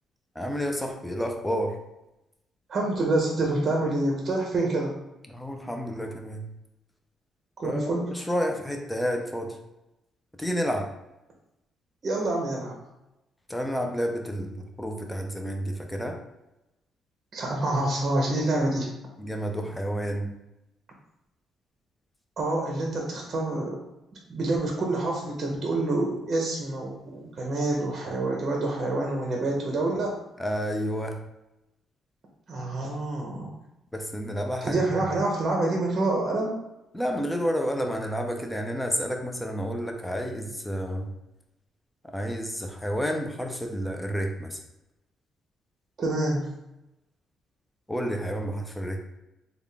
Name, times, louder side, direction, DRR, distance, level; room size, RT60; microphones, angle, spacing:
voice 1, 0.4-1.8 5.3-6.5 7.6-9.6 10.4-10.9 13.5-16.2 19.2-20.3 30.4-31.2 33.9-34.8 36.9-41.1 42.1-44.6 47.9-49.0, equal, 5° left, 3 dB, 0.5 m, -30 dB
voice 2, 2.7-5.0 7.6-8.1 12.0-12.8 17.3-18.9 22.4-23.8 24.3-30.1 32.5-33.5 34.6-36.6 46.0-46.5, right 2 dB, 45° right, 0 dB, 0.7 m, -27 dB
3.6 x 2.3 x 3.3 m, 0.93 s
cardioid pair, 90°, 0 cm